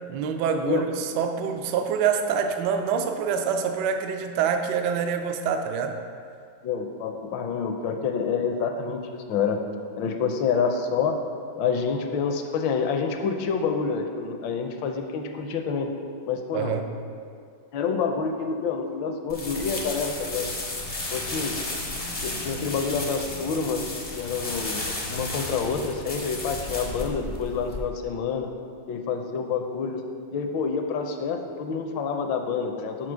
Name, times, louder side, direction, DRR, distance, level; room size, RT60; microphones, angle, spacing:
voice 1, 0.1-6.0 16.5-16.9, right 6 dB, 75° right, 6 dB, 1.1 m, -26 dB
voice 2, 6.6-9.6 10.0-11.2 11.6-15.9 16.3-16.7 17.7-20.5 21.1-21.6 22.2-28.5 28.9-30.0 30.3-33.1, left 5 dB, 75° left, 5 dB, 1.3 m, -28 dB
sound 1, 19.3-27.8, left 2 dB, 40° left, 0.5 m, -33 dB
6.0 x 4.8 x 6.2 m, 2.3 s
omnidirectional pair, 2.2 m